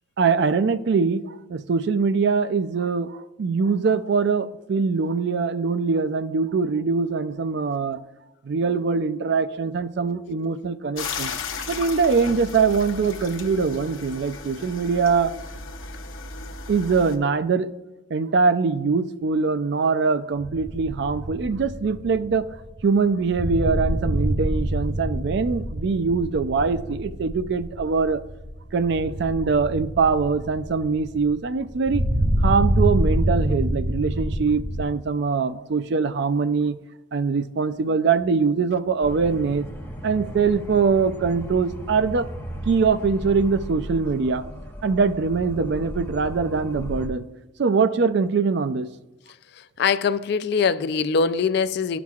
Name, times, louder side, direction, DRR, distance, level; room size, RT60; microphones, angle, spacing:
voice 1, 0.2-8.0 8.4-11.3 11.7-15.3 16.7-17.7 18.1-22.5 22.8-28.2 28.7-32.0 32.4-36.8 37.1-39.7 40.0-42.3 42.7-44.4 44.8-47.3 47.6-48.9, right 5 dB, 55° right, 0.4 m, -23 dB
sound 1, 11.0-17.2, left 4 dB, 80° left, 0.8 m, -35 dB
sound 2, 20.4-34.8, equal, 15° right, 2.7 m, -27 dB
sound 3, 39.0-47.1, equal, 10° left, 0.9 m, -36 dB
voice 2, 49.5-52.0, left 5 dB, 55° left, 0.3 m, -23 dB
11.5 x 6.0 x 2.4 m
head